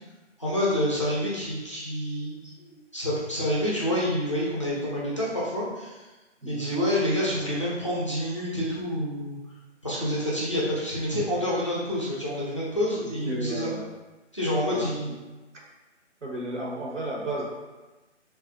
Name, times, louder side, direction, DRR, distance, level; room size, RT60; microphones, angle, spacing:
voice 1, 0.4-6.1 6.5-9.4 9.8-13.7 14.3-15.1, equal, 25° left, -7 dB, 0.4 m, -28 dB
voice 2, 6.4-6.8 13.2-13.9 14.7-15.1 16.2-17.5, right 1 dB, 75° right, -2 dB, 0.9 m, -33 dB
3.0 x 2.4 x 2.5 m, 1.2 s
figure-of-eight pair, 155°, 37 cm